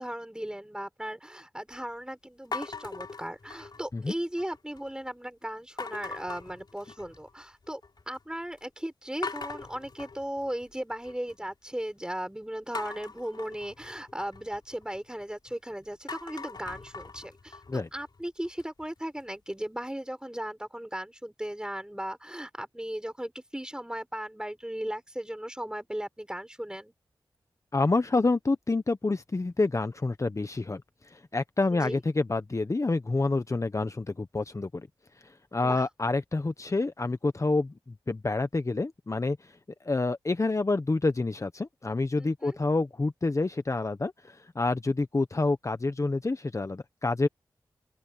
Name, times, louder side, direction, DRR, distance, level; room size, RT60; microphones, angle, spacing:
voice 1, 0.0-7.8 8.1-26.9 31.7-32.0 35.6-35.8 42.2-42.6, right 1 dB, 10° right, 6.3 m, -37 dB
sound 1, 2.5-4.0 4.4-4.9 5.8-7.3 7.6-8.2 8.6-8.7 9.2-11.3 12.7-15.5 15.9-18.8, left 4 dB, 60° left, 3.5 m, -41 dB
voice 2, 27.7-30.8 31.1-34.9 35.2-37.7 38.1-39.5 39.8-47.3, left 3 dB, 40° left, 1.1 m, -28 dB
open air
cardioid pair, 45°, 8 cm